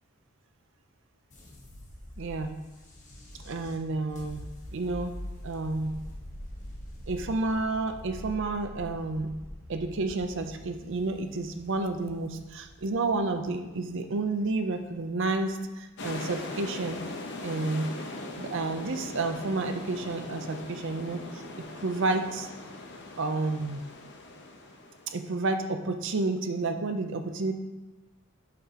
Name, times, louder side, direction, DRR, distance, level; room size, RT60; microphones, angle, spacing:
sound 1, 1.3-15.5, left 1 dB, 40° left, 1.2 m, -45 dB
voice 1, 2.2-2.5 3.4-4.5 4.7-5.2 5.4-5.9 7.1-9.3 9.7-17.0 17.4-17.9 18.4-22.5 23.2-23.8 25.1-27.5, right 3 dB, 65° right, 7 dB, 0.6 m, -30 dB
sound 2, 16.0-25.2, left 2 dB, 60° left, 0.9 m, -40 dB
8.2 x 6.8 x 2.9 m, 1.1 s
head